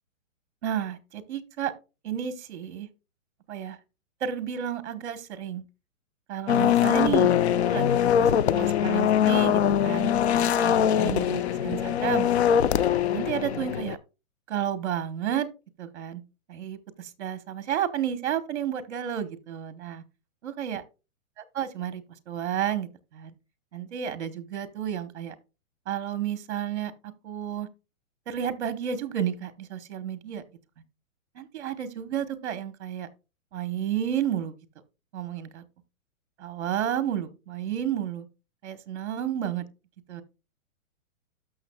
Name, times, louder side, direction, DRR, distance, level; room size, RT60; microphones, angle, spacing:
voice 1, 0.6-1.7 2.0-2.9 3.5-3.8 4.2-5.6 6.3-7.3 7.6-12.3 13.1-14.0 14.5-15.5 15.8-16.2 16.5-20.0 20.4-20.8 21.4-23.3 23.7-25.3 25.9-26.9 27.2-27.7 28.3-30.4 31.3-33.1 33.5-34.6 35.1-35.6 36.4-38.3 38.6-39.7 40.1-40.2, right 9 dB, 55° right, 1.2 m, -31 dB
sound 1, 6.5-14.0, left 9 dB, 55° left, 0.5 m, -22 dB
12.5 x 6.2 x 2.3 m
hypercardioid pair, 175°, 40 cm